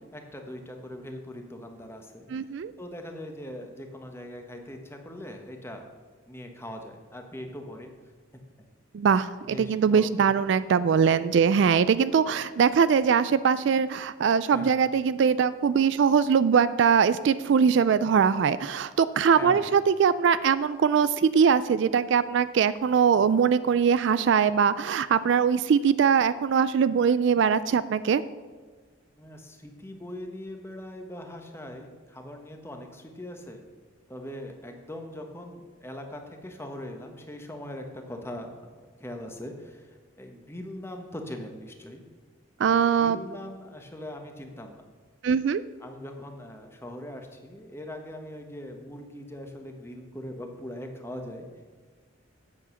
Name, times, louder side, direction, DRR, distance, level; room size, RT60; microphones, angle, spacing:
voice 1, 0.1-2.3 2.8-5.9 6.3-7.9 9.5-10.3 14.5-14.8 19.3-19.7 29.2-33.6 34.1-42.0 42.7-44.8 45.8-51.5, left 1 dB, 10° left, 4 dB, 1.1 m, -41 dB
voice 2, 2.3-2.7 8.9-28.2 42.6-43.2 45.2-45.6, right 6 dB, 60° right, 15 dB, 0.3 m, -22 dB
8.5 x 7.1 x 6.9 m, 1.4 s
head